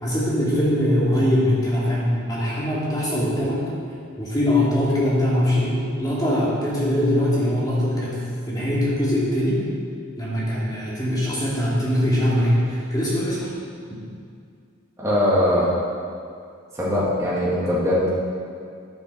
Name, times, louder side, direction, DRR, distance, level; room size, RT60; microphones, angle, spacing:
voice 1, 0.0-3.6 4.2-9.6 10.2-13.5, left 1 dB, 20° left, -8 dB, 2.7 m, -22 dB
voice 2, 15.0-15.7 16.7-18.1, left 1 dB, 15° right, -8 dB, 2.3 m, -21 dB
10.5 x 9.1 x 4.6 m, 2.3 s
head